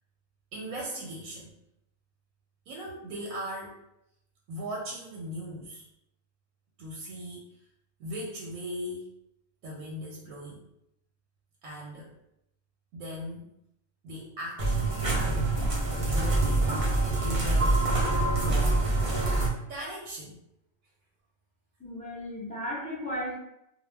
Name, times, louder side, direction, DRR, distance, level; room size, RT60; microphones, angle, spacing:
voice 1, 0.5-1.5 2.7-3.8 4.5-5.9 6.8-7.5 8.0-9.1 9.6-10.7 11.6-12.1 12.9-13.5 14.0-15.5 15.8-17.9 18.3-18.9 19.7-20.4, equal, 80° right, -2 dB, 1.0 m, -39 dB
sound 1, 14.6-19.5, right 2 dB, 55° right, 0.3 m, -25 dB
voice 2, 21.8-23.3, equal, 10° left, -7 dB, 0.5 m, -35 dB
2.3 x 2.0 x 3.2 m, 0.80 s
omnidirectional pair, 1.4 m